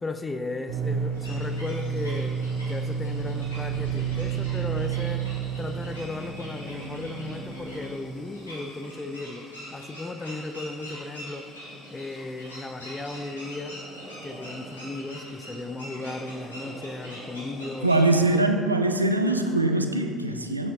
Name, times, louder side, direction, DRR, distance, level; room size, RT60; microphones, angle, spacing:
voice 1, 0.0-2.4 2.7-5.3 5.6-11.5 11.9-13.8 14.2-17.9 18.3-18.4, left 2 dB, 20° left, 8 dB, 0.6 m, -35 dB
sound 1, 0.7-7.8, right 7 dB, 50° right, 0.9 m, -31 dB
sound 2, 1.1-18.4, equal, 85° left, 2.0 m, -43 dB
sound 3, 2.9-5.9, left 3 dB, 60° left, 0.7 m, -45 dB
voice 2, 17.8-20.7, right 2 dB, 90° right, 6 dB, 0.3 m, -22 dB
9.5 x 7.4 x 2.8 m, 2.2 s
figure-of-eight pair, 55°, 0 cm